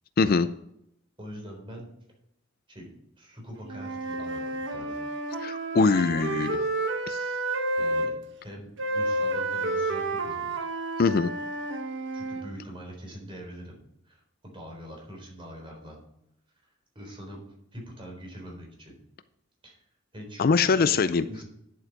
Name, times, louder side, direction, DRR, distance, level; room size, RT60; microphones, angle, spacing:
voice 1, 0.2-0.5 5.4-6.6 7.1-7.2 11.0-11.3 20.4-21.2, left 4 dB, 45° left, 13 dB, 0.4 m, -22 dB
voice 2, 1.2-1.9 2.7-2.9 3.2-5.1 5.8-6.6 7.5-8.1 8.4-10.7 12.1-16.0 16.9-17.4 17.7-19.0 19.6-19.8 20.1-21.0 21.3-21.4, equal, 25° right, 0 dB, 3.9 m, -43 dB
Wind instrument woodwind instrument, 3.7-8.1 8.8-12.5, right 2 dB, 60° right, 1.5 m, -30 dB
10.5 x 7.7 x 5.2 m, 0.78 s
head